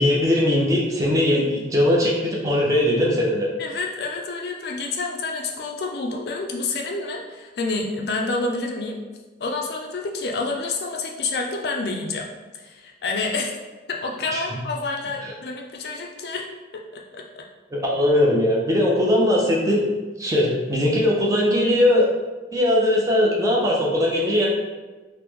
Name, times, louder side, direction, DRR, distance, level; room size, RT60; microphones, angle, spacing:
voice 1, 0.0-3.5 14.3-14.4 17.7-19.8 20.2-22.1 22.5-24.5, left 1 dB, 20° right, -2 dB, 0.5 m, -20 dB
voice 2, 3.6-9.0 9.4-12.3 12.5-13.5 13.9-16.5 16.9-17.4, left 3 dB, 60° left, 0 dB, 0.4 m, -28 dB
3.0 x 2.0 x 3.4 m, 1.2 s
head